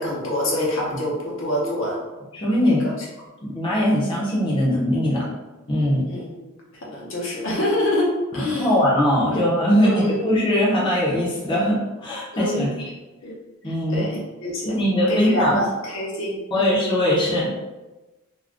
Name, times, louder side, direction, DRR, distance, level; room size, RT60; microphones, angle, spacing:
voice 1, 0.0-2.0 2.7-2.9 6.1-6.5 6.8-8.8 9.3-9.5 9.8-10.2 12.3-12.7 13.2-13.3 13.6-14.8 15.1-16.7, left 1 dB, 65° left, -4 dB, 0.8 m, -26 dB
voice 2, 2.3-2.9 3.5-5.3 5.7-6.1 8.3-12.9 13.6-14.1 14.6-15.6 16.5-17.7, equal, 25° left, -6 dB, 0.7 m, -21 dB
2.4 x 2.2 x 3.4 m, 1.1 s
head